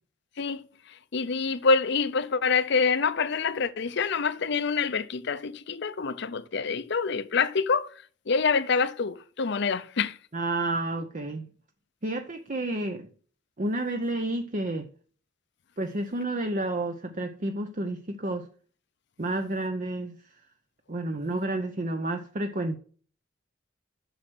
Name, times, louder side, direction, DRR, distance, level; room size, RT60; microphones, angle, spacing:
voice 1, 1.1-7.9 8.3-10.2, left 5 dB, 60° left, 0.6 m, -26 dB
voice 2, 10.3-11.5 12.0-13.1 13.6-14.9 15.8-18.5 19.2-20.2 20.9-22.8, right 2 dB, 40° right, 0.8 m, -30 dB
7.9 x 6.4 x 6.2 m
head